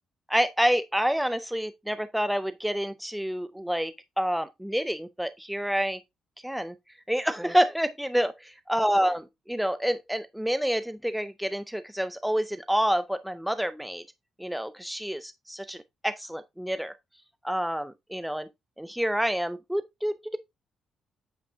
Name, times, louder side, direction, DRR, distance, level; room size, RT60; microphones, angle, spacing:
voice 1, 0.3-6.0 6.4-6.7 7.1-9.2 9.5-14.0 14.4-16.9 17.4-18.5 18.8-20.4, equal, 5° right, 0.4 m, -28 dB
8.9 x 5.3 x 2.6 m
cardioid pair, 90°, 0 cm